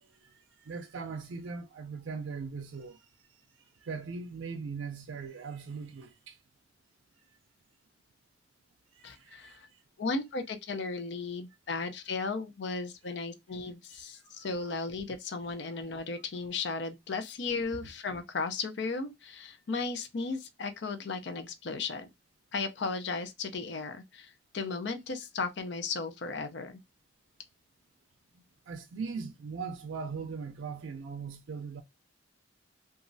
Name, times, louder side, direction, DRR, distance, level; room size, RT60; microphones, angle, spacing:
voice 1, 0.0-3.1 3.6-6.4 8.9-9.8 13.9-14.0 14.3-14.7 28.3-31.8, right 5 dB, 80° right, 0.4 m, -40 dB
voice 2, 9.0-9.7 10.0-22.1 22.5-26.8, left 4 dB, 65° left, 0.5 m, -35 dB
3.0 x 2.4 x 2.5 m
head